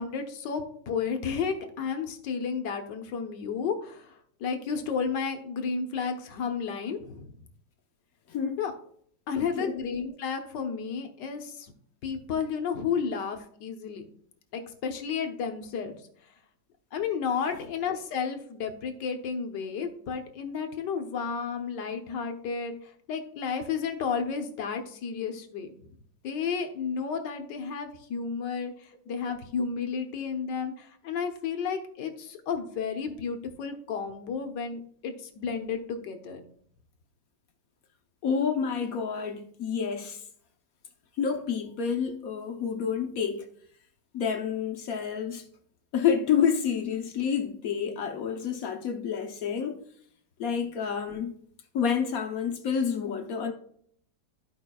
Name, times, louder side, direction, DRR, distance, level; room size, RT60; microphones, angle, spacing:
voice 1, 0.0-4.1 4.4-7.3 8.6-8.7 9.3-11.7 12.0-14.1 14.5-16.0 16.9-25.7 26.2-36.4, left 6 dB, 90° left, 1.6 m, -32 dB
voice 2, 8.3-8.6 9.3-9.7 29.1-29.2 38.2-40.2 41.2-43.4 44.1-45.5 45.9-49.8 50.4-51.3 51.7-53.5, left 7 dB, 60° left, 1.2 m, -29 dB
14.0 x 5.1 x 2.3 m
omnidirectional pair, 1.8 m